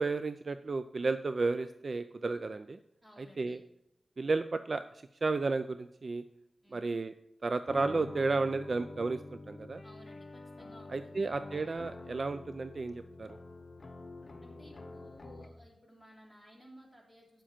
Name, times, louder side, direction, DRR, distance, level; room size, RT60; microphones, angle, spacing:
voice 1, 0.0-2.8 3.2-3.6 4.2-4.8 5.2-6.2 6.7-7.1 7.4-9.2 9.5-9.8 10.9-13.4, right 3 dB, 50° right, 11 dB, 0.4 m, -32 dB
voice 2, 3.0-3.6 6.6-7.0 9.8-11.3 14.4-17.4, equal, 15° right, -1 dB, 3.3 m, -57 dB
sound 1, 7.6-15.7, left 2 dB, 50° left, 0.9 m, -47 dB
8.9 x 7.3 x 4.3 m, 0.82 s
wide cardioid pair, 75°, 0 cm